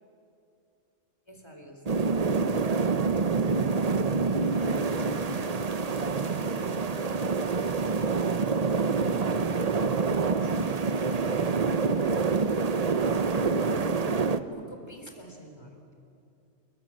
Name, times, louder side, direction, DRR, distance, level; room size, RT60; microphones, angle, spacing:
voice 1, 1.3-2.2 14.5-15.9, equal, 20° left, 3 dB, 4.1 m, -48 dB
sound 1, 1.9-14.4, right 4 dB, 35° right, 0.8 m, -26 dB
sound 2, 4.3-13.7, equal, 55° right, 5.9 m, -49 dB
voice 2, 4.5-5.5 6.2-8.9 9.6-11.9, left 2 dB, 55° left, -5 dB, 7.8 m, -51 dB
29.5 x 23.5 x 7.5 m, 2.7 s
omnidirectional pair, 1.3 m